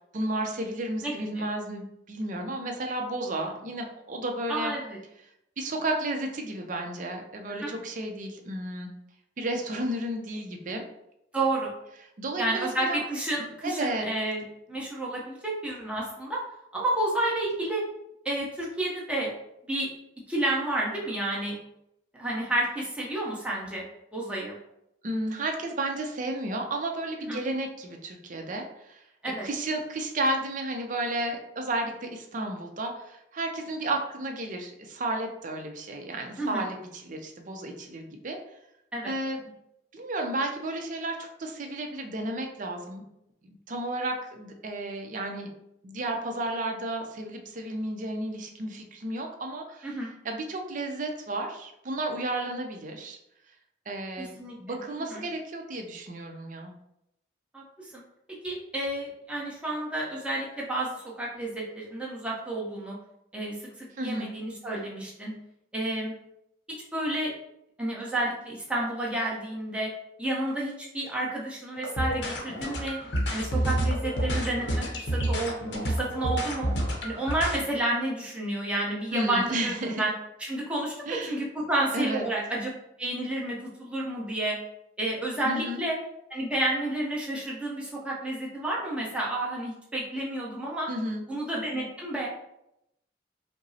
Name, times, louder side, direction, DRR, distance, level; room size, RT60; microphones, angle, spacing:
voice 1, 0.1-4.7 5.6-8.9 9.4-10.8 12.2-13.0 13.6-14.1 25.0-29.0 29.4-38.4 39.0-39.5 39.9-43.0 43.4-45.5 45.8-50.0 50.2-53.2 53.9-56.7 64.0-64.3 79.1-80.1 81.1-81.4 81.9-82.3 85.4-85.8 90.9-91.2, right 1 dB, 45° right, 3 dB, 0.5 m, -32 dB
voice 2, 1.0-1.4 4.5-5.0 7.6-7.7 11.3-11.7 12.4-14.4 14.7-16.4 16.7-17.8 18.2-19.3 19.7-19.9 20.3-21.6 22.1-23.8 24.1-24.6 27.3-27.4 29.2-29.4 36.4-36.7 38.9-39.1 49.8-50.1 54.2-54.8 55.1-55.2 57.5-57.9 58.4-63.0 63.3-65.3 65.7-66.1 66.9-67.3 67.8-69.9 70.2-73.0 73.3-75.6 75.8-76.7 77.0-80.1 80.4-80.9 81.2-82.7 83.0-84.6 85.0-86.0 86.3-90.9 91.3-92.3, right 1 dB, 5° right, -5 dB, 0.8 m, -30 dB
sound 1, 71.8-77.6, equal, 65° left, 0.7 m, -29 dB
5.0 x 2.0 x 2.7 m, 0.81 s
head